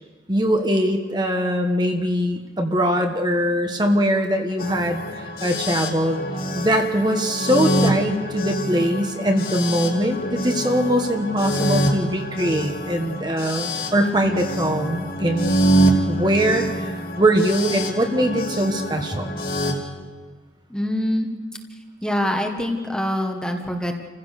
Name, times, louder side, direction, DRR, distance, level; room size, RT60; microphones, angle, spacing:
voice 1, 0.3-6.2 6.5-15.5 16.1-19.3, equal, 25° right, 4 dB, 1.4 m, -22 dB
sound 1, 4.6-19.7, right 1 dB, 55° left, 2.9 m, -25 dB
voice 2, 20.7-21.3 22.0-24.0, left 1 dB, 5° left, 3 dB, 1.4 m, -24 dB
29.5 x 15.5 x 6.7 m, 1.4 s
head